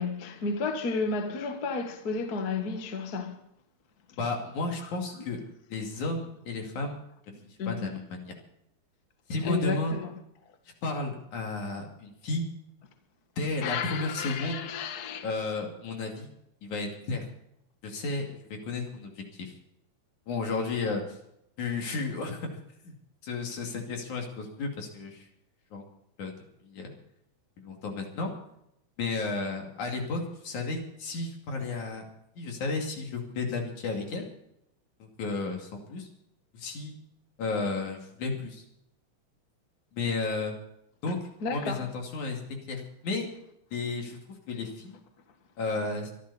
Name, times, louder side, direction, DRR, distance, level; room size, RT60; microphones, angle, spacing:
voice 1, 0.0-3.4 7.6-8.0 9.4-10.1 13.6-15.3 41.4-41.9, left 4 dB, 40° left, 1.5 m, -32 dB
voice 2, 4.2-5.4 5.7-7.0 7.7-8.4 9.3-10.0 10.8-12.4 13.4-14.7 15.2-16.3 16.6-17.3 17.8-19.5 20.3-21.2 21.6-22.5 22.8-22.9 23.2-25.3 25.7-25.8 26.2-26.3 26.6-27.0 27.6-28.3 29.0-32.1 32.4-34.3 35.0-36.1 36.5-37.0 37.4-38.6 39.9-40.5 41.0-41.2 41.5-43.4 43.7-44.2 44.5-45.0 45.6-46.1, left 3 dB, 70° left, 3.9 m, -33 dB
24.0 x 11.5 x 4.2 m
omnidirectional pair, 3.6 m